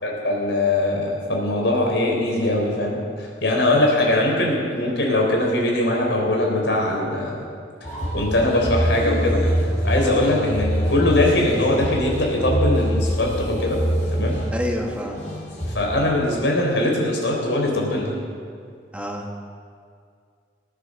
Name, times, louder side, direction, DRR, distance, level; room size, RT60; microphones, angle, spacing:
voice 1, 0.0-7.5 8.1-9.4 9.8-13.8 14.1-14.4 15.7-18.1, left 1 dB, 80° left, -1 dB, 3.9 m, -21 dB
sound 1, 7.8-15.9, equal, 40° left, 3.7 m, -25 dB
voice 2, 14.5-15.2 18.9-19.3, left 1 dB, 5° right, 1 dB, 1.6 m, -28 dB
19.0 x 9.9 x 6.6 m, 2.2 s
head